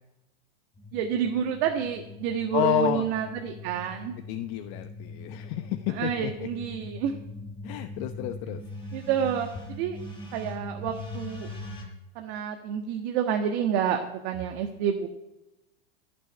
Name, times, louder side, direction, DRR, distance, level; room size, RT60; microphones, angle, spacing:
sound 1, 0.8-11.8, left 2 dB, 15° left, 7.2 m, -41 dB
voice 1, 0.9-4.1 5.9-7.1 8.9-10.0 10.3-11.5 12.1-15.1, right 8 dB, 55° right, 4 dB, 1.5 m, -29 dB
voice 2, 2.5-3.0 4.3-5.7 6.0-6.3 7.6-8.6, left 14 dB, 50° left, 8 dB, 0.9 m, -29 dB
14.5 x 6.9 x 9.9 m, 0.96 s
hypercardioid pair, 120°, 32 cm